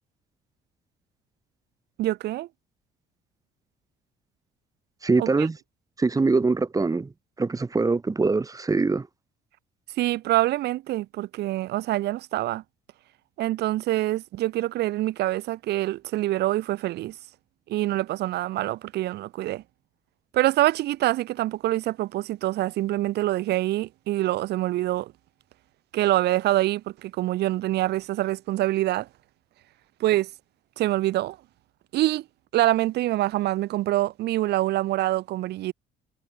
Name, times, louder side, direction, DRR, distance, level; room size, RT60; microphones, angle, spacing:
voice 1, 2.0-2.5 5.2-5.5 10.0-12.6 13.4-17.2 17.7-19.6 20.3-25.1 25.9-29.1 30.0-30.3 30.8-31.4 31.9-32.2 32.5-35.7, right 16 dB, 75° right, 6.6 m, -25 dB
voice 2, 5.0-5.6 6.0-7.1 7.4-9.1, right 3 dB, 20° right, 3.7 m, -23 dB
cardioid pair, 110°, 17 cm